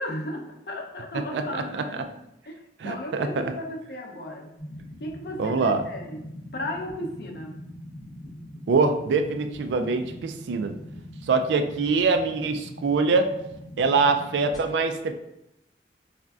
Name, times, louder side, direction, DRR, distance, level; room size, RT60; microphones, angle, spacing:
voice 1, 0.0-2.1 2.5-4.5 5.0-7.6, left 1 dB, 60° left, 1 dB, 0.5 m, -35 dB
voice 2, 2.8-3.5 5.4-5.8 8.7-10.7 11.3-13.3 13.8-15.1, right 4 dB, 85° right, 8 dB, 0.3 m, -24 dB
sound 1, 4.6-14.6, equal, 20° left, 0.7 m, -42 dB
4.1 x 2.5 x 2.3 m, 0.83 s
head